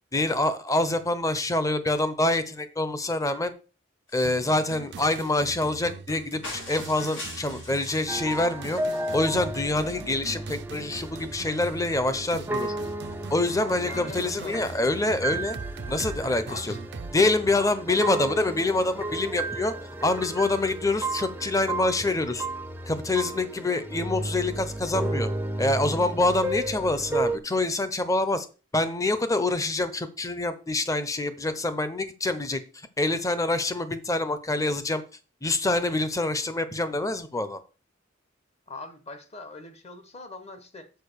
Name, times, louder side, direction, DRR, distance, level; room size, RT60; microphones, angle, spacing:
voice 1, 0.1-3.5 4.1-8.8 9.1-12.7 13.3-15.6 15.9-16.7 17.1-19.7 20.0-22.5 22.9-25.3 25.6-28.5 28.7-32.6 33.0-35.0 35.4-37.6, left 2 dB, 15° left, 0.8 m, -26 dB
sound 1, 4.1-4.5 6.4-8.4 8.7-9.4, left 2 dB, 85° left, 5.2 m, -41 dB
sound 2, 4.2-17.2, right 4 dB, 60° right, 0.4 m, -41 dB
sound 3, 8.1-27.4, right 2 dB, 10° right, 0.6 m, -33 dB
voice 2, 13.6-14.6 16.5-16.8 17.5-18.1 38.7-40.9, left 2 dB, 35° left, 1.2 m, -41 dB
6.8 x 4.9 x 6.7 m
head